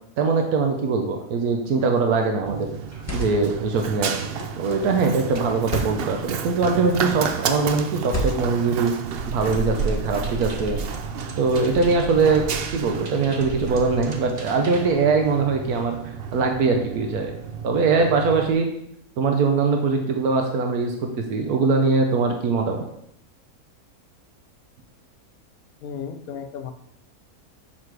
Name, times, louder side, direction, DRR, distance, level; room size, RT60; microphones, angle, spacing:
voice 1, 0.2-2.7 3.1-4.1 4.6-8.9 9.3-10.8 11.4-12.4 12.7-17.3 17.6-18.7 19.2-22.8, right 4 dB, 85° right, 3 dB, 1.3 m, -22 dB
sound 1, 1.7-2.0 2.8-3.5 4.4-4.7 5.6-6.0 6.9-7.2 8.0-8.7, equal, 10° left, 1.1 m, -31 dB
Run, 2.5-18.5, right 6 dB, 60° right, 0.6 m, -32 dB
sound 2, 9.2-14.8, right 2 dB, 35° right, 1.0 m, -38 dB
voice 2, 25.8-26.7, left 7 dB, 75° left, 7 dB, 1.2 m, -34 dB
6.6 x 5.7 x 4.7 m, 0.74 s
omnidirectional pair, 1.6 m